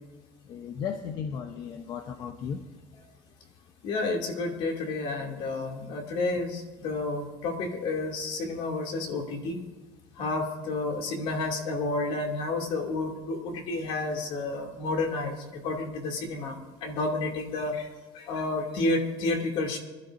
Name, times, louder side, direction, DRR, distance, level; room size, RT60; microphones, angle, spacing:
voice 1, 0.5-2.6, left 7 dB, 40° left, 6 dB, 0.8 m, -35 dB
voice 2, 3.8-9.6 10.1-17.9 18.1-19.8, left 2 dB, 60° left, 2 dB, 2.7 m, -30 dB
23.5 x 12.5 x 2.7 m, 1.3 s
cardioid pair, 175°, 10 cm